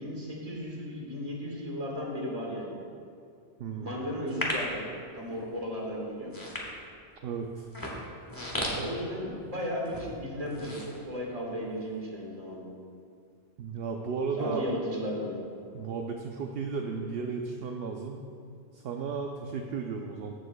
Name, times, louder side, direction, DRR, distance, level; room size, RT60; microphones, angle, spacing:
voice 1, 0.0-2.7 3.8-4.9 5.1-6.3 8.6-10.8 11.1-12.6 14.4-15.4, equal, 35° right, -3 dB, 1.7 m, -35 dB
voice 2, 3.6-4.0 7.2-7.7 8.7-8.9 13.6-14.7 15.7-18.3 18.7-20.3, right 5 dB, 70° right, 3 dB, 0.8 m, -34 dB
sound 1, 4.3-4.8 5.4-5.7 6.2-7.1 7.6-9.5 9.8-10.1 10.4-11.6 12.0-12.1, left 1 dB, 20° left, 1.3 m, -35 dB
15.0 x 6.8 x 2.2 m, 2.5 s
omnidirectional pair, 1.1 m